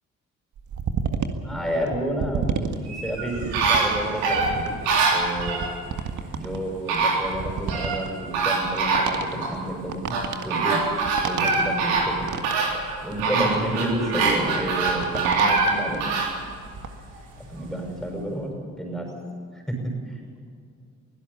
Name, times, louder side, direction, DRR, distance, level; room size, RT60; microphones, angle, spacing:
sound 1, 0.6-16.0 16.4-16.9, right 6 dB, 50° right, 1.9 m, -32 dB
voice 1, 1.4-4.8 5.1-5.6 6.3-10.8 11.2-12.3 13.0-16.0 17.4-19.1 19.7-19.8, right 1 dB, ahead, 1 dB, 6.1 m, -30 dB
sound 2, 2.9-5.7 6.5-6.6 6.9-8.0 8.3-9.5 10.1-16.3 16.8-16.9, right 4 dB, 70° right, 3.8 m, -24 dB
23.5 x 17.0 x 7.2 m, 2.4 s
figure-of-eight pair, 45°, 38 cm